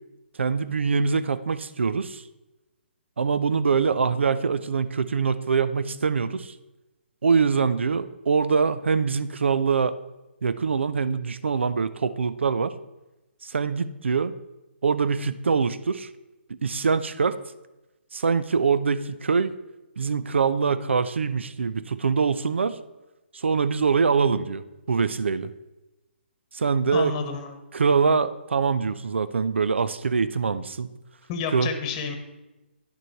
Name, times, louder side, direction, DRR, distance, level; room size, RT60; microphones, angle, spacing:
voice 1, 0.4-2.2 3.2-6.5 7.2-10.0 10.4-12.7 13.4-14.3 14.8-16.1 16.6-17.4 18.1-19.5 20.0-22.8 23.3-24.6 24.9-25.5 26.5-27.1 27.7-30.9 31.5-31.7, right 5 dB, 85° right, 14 dB, 0.6 m, -24 dB
voice 2, 26.9-27.5 31.3-32.2, left 5 dB, 25° left, 7 dB, 1.2 m, -30 dB
10.5 x 6.7 x 4.6 m, 1.0 s
hypercardioid pair, 160°, 6 cm